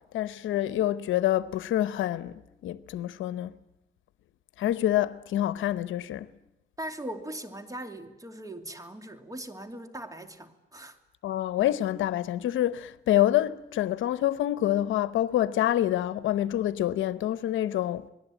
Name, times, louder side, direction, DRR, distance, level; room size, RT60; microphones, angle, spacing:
voice 1, 0.1-3.5 4.6-6.3 11.2-18.1, left 13 dB, 80° left, 0.9 m, -27 dB
voice 2, 6.8-11.0, right 1 dB, 15° right, 2.7 m, -40 dB
27.0 x 19.5 x 9.1 m
cardioid pair, 90°, 20 cm